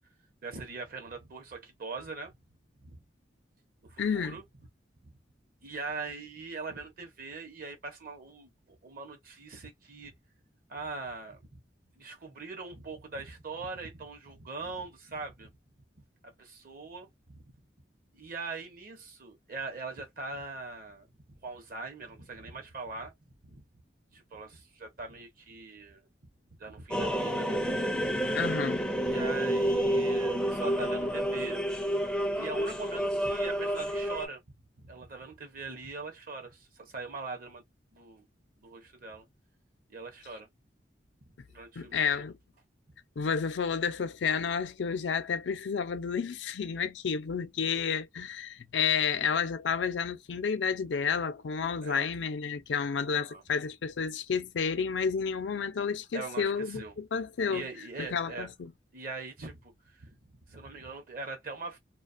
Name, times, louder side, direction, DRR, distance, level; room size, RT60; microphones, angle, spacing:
voice 1, 0.4-2.3 2.8-3.0 3.8-4.4 5.0-5.1 5.6-10.1 10.7-11.6 11.9-15.5 16.2-17.4 18.1-23.6 24.1-26.1 26.6-27.7 28.0-28.3 29.0-31.6 32.3-34.4 34.8-37.6 37.9-38.3 38.6-39.3 39.9-40.5 41.5-42.2 51.8-52.1 53.1-53.4 56.1-57.0 57.5-58.5 58.9-61.8, right 3 dB, 50° right, 0.7 m, -42 dB
voice 2, 4.0-4.4 28.3-28.9 41.8-42.4 43.2-57.7 58.0-58.7, left 6 dB, 85° left, 0.5 m, -31 dB
sound 1, 26.9-34.3, equal, 5° left, 0.4 m, -29 dB
2.4 x 2.2 x 2.4 m
head